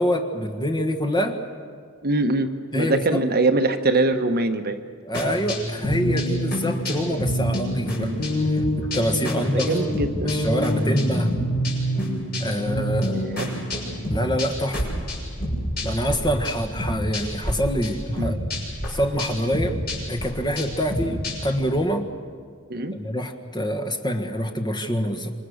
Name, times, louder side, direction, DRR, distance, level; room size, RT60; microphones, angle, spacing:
voice 1, 0.0-1.4 2.7-3.2 5.0-8.1 8.5-9.7 10.2-11.3 12.4-13.2 14.1-14.9 15.8-18.4 18.9-19.8 20.1-22.1 22.9-25.3, equal, 20° left, 4 dB, 1.6 m, -25 dB
voice 2, 2.0-4.8 9.5-10.4 12.6-13.5 18.2-18.4 22.7-22.9, right 2 dB, 45° right, 6 dB, 1.2 m, -23 dB
sound 1, 5.1-16.2 16.4-17.5 17.8-21.6, equal, 45° left, 6.8 m, -26 dB
28.0 x 25.0 x 6.5 m, 2.1 s
head